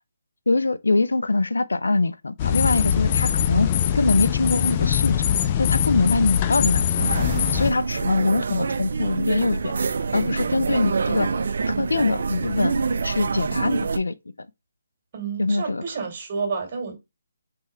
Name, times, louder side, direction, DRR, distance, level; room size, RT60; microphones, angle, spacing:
voice 1, 0.5-3.7 3.9-5.2 5.6-6.8 7.1-9.7 10.1-11.3 11.7-12.8 13.0-14.1 15.4-15.8, left 3 dB, 90° left, 0.5 m, -23 dB
sound 1, 2.4-7.7, left 9 dB, 30° left, 0.4 m, -22 dB
sound 2, 7.0-14.0, right 5 dB, 65° right, 0.5 m, -26 dB
voice 2, 15.1-16.9, right 5 dB, 35° right, 1.9 m, -30 dB
3.5 x 3.4 x 4.2 m
hypercardioid pair, 155°, 0 cm